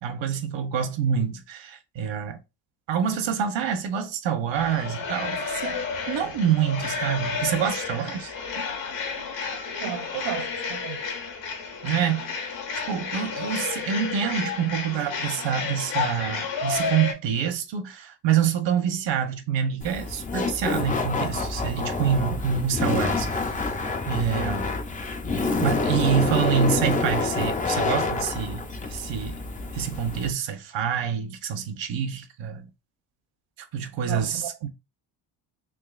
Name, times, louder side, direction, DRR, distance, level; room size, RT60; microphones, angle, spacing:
voice 1, 0.0-2.4 2.9-8.3 11.8-12.6 12.9-23.5 24.1-24.7 25.6-29.4 29.7-32.7 33.7-34.7, right 8 dB, 70° right, 1.0 m, -26 dB
sound 1, 4.5-17.1, left 5 dB, 70° left, 1.3 m, -31 dB
voice 2, 9.8-11.0 34.0-34.7, right 9 dB, 55° right, 0.6 m, -34 dB
Laughter, 19.8-30.3, left 3 dB, 20° left, 0.3 m, -27 dB
3.7 x 3.1 x 2.4 m
cardioid pair, 155°, 46 cm